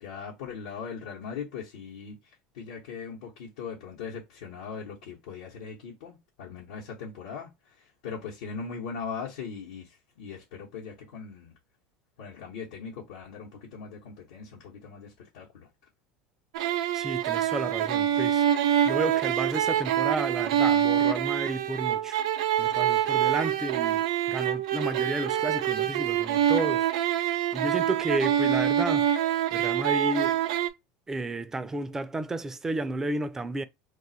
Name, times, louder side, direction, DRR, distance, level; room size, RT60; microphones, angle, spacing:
voice 1, 0.0-11.5 12.2-15.7, left 6 dB, 85° left, 0.9 m, -40 dB
sound 1, 16.5-30.7, right 10 dB, 90° right, 0.4 m, -25 dB
voice 2, 16.9-18.5 18.9-22.2 22.6-26.9 27.2-29.1 29.5-30.4 31.1-33.6, right 2 dB, 15° right, 0.3 m, -32 dB
2.4 x 2.3 x 4.0 m
supercardioid pair, 120°, 3 cm